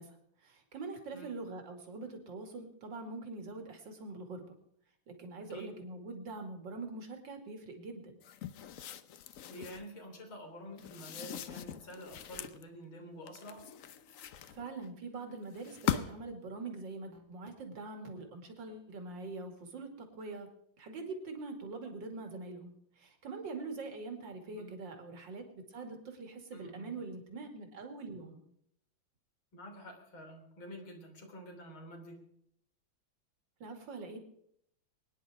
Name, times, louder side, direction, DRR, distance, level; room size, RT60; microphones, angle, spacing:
voice 1, 0.0-4.6 5.1-8.2 14.4-20.5 20.8-28.4 33.6-34.2, right 3 dB, 65° right, 4 dB, 3.1 m, -44 dB
sound 1, 8.2-9.9 10.8-12.6 13.3-14.9 15.5-16.3, left 9 dB, 60° left, 0.9 m, -40 dB
voice 2, 9.5-13.7 24.5-24.7 26.5-26.9 29.5-32.2, equal, 80° left, 2 dB, 4.3 m, -48 dB
23.0 x 10.5 x 4.9 m, 0.72 s
omnidirectional pair, 2.2 m